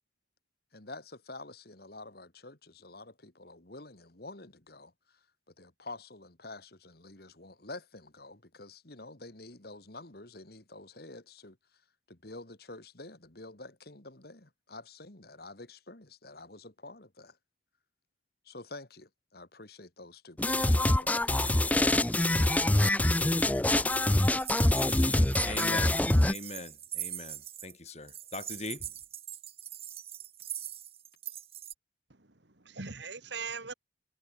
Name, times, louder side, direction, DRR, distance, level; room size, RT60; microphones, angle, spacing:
voice 1, 0.7-5.2 5.6-11.6 12.1-17.4 18.4-21.9, left 2 dB, 55° left, 2.3 m, -48 dB
sound 1, 20.4-26.3, left 1 dB, 10° left, 0.4 m, -25 dB
sound 2, 24.2-27.7 28.1-31.7, right 11 dB, 30° right, 4.6 m, -42 dB
voice 2, 25.4-28.9, left 2 dB, 35° left, 2.0 m, -41 dB
voice 3, 32.1-33.7, right 5 dB, 70° right, 2.2 m, -41 dB
head